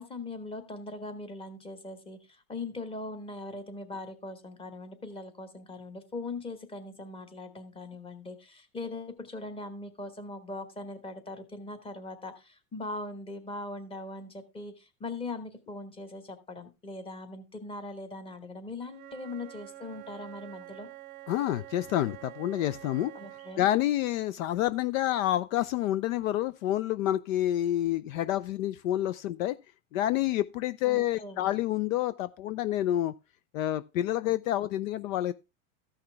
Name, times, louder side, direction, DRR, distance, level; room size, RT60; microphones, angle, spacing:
voice 1, 0.0-20.9 23.1-23.6 30.8-31.5, left 2 dB, 10° left, 1.2 m, -40 dB
Wind instrument woodwind instrument, 18.8-23.7, right 16 dB, 25° right, 0.6 m, -47 dB
voice 2, 21.3-23.1 23.6-29.6 29.9-33.1 33.5-35.3, left 13 dB, 65° left, 0.5 m, -28 dB
14.0 x 5.7 x 3.3 m
hypercardioid pair, 130°, 44 cm